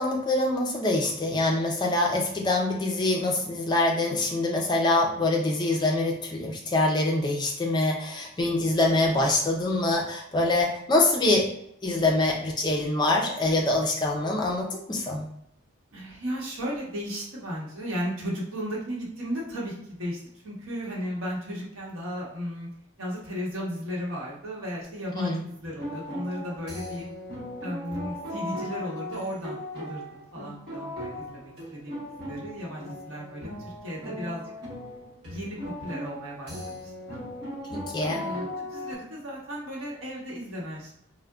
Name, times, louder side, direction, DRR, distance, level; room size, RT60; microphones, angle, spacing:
voice 1, 0.0-11.5 11.8-15.3 25.1-25.4 37.7-38.2, left 2 dB, 20° left, 0 dB, 0.4 m, -25 dB
voice 2, 15.9-22.7 23.0-27.1 27.6-34.5 35.3-37.2 38.0-40.9, equal, 85° right, -4 dB, 0.9 m, -35 dB
sound 1, 25.6-39.0, left 1 dB, 55° right, 1.0 m, -38 dB
3.6 x 2.1 x 2.3 m, 0.75 s
head